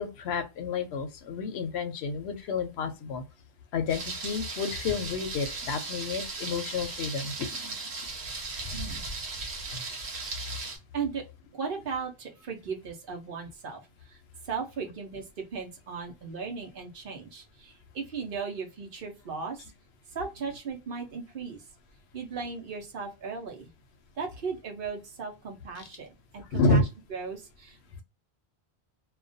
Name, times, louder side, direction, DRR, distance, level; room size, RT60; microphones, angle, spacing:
voice 1, 0.0-3.2 3.7-7.8 9.7-9.8 26.5-26.8, left 3 dB, 85° left, 0.8 m, -30 dB
Thunder, 3.9-10.8, right 3 dB, 90° right, 1.0 m, -37 dB
voice 2, 8.7-9.0 10.9-11.2 11.5-19.6 20.1-21.7 22.1-23.7 24.2-28.0, right 5 dB, 60° right, 0.8 m, -37 dB
2.4 x 2.1 x 2.5 m
omnidirectional pair, 1.1 m